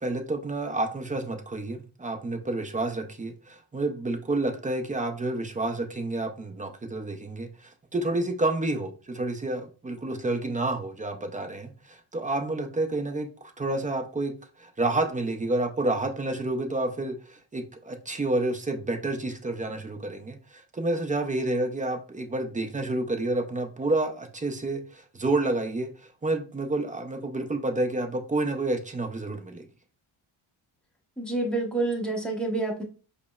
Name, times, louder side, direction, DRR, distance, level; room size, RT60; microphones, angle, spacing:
voice 1, 0.0-13.3 13.6-29.7, right 2 dB, 15° right, 5 dB, 0.4 m, -29 dB
voice 2, 31.2-32.8, right 2 dB, ahead, 0 dB, 0.8 m, -28 dB
4.9 x 2.1 x 2.3 m, 0.37 s
cardioid pair, 85°, 50 cm